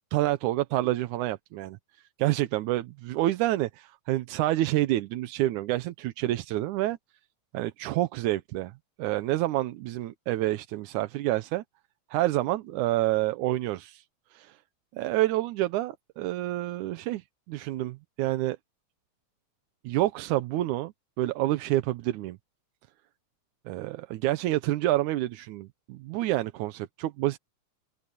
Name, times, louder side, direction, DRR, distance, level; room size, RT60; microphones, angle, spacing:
voice 1, 0.1-1.8 2.2-7.0 7.5-11.6 12.1-14.0 14.3-14.6 14.9-18.6 19.8-22.4 23.7-27.4, right 16 dB, 90° right, 2.3 m, -28 dB
open air
omnidirectional pair, 3.4 m